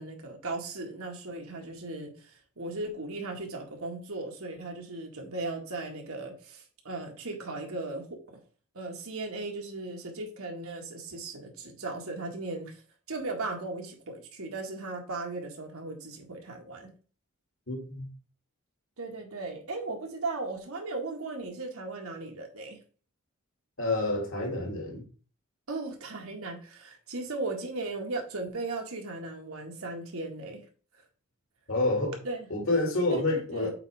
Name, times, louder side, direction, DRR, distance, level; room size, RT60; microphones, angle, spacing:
voice 1, 0.0-8.4 8.7-12.8 13.1-16.9 19.0-22.8 25.7-30.6 30.9-31.0 32.2-32.5 33.1-33.7, right 2 dB, 75° right, 1.8 m, -37 dB
voice 2, 17.7-18.1 23.8-25.1 31.7-32.2 32.5-33.7, left 2 dB, 60° left, 2.3 m, -28 dB
8.0 x 4.5 x 3.5 m
head